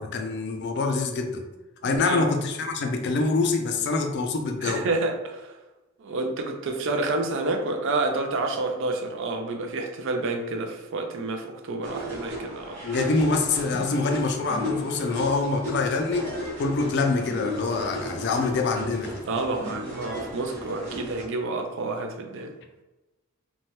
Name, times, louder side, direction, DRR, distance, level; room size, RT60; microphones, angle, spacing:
voice 1, 0.0-1.4 1.8-4.9 12.8-16.3 16.6-19.2, left 3 dB, 50° left, 4 dB, 0.4 m, -25 dB
voice 2, 1.8-2.2 4.6-5.5 6.0-12.8 19.3-22.5, right 2 dB, 60° right, 4 dB, 0.4 m, -29 dB
sound 1, 11.8-21.2, equal, 30° right, 0.9 m, -35 dB
2.7 x 2.2 x 3.1 m, 1.1 s
head